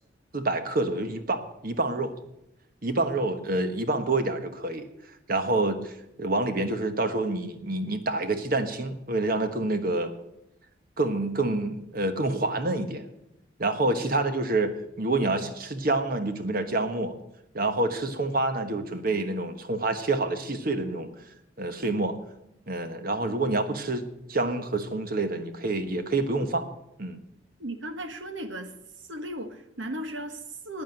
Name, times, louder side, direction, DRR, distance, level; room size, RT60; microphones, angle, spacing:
voice 1, 0.3-2.1 2.8-4.9 5.3-10.1 11.0-13.1 13.6-17.1 17.5-21.1 21.6-22.2 22.7-24.0 24.3-26.7 27.0-27.2, right 2 dB, 50° right, 8 dB, 1.3 m, -27 dB
voice 2, 27.6-28.7 29.1-30.8, right 1 dB, 75° right, 7 dB, 1.5 m, -36 dB
11.5 x 9.3 x 7.9 m, 0.84 s
head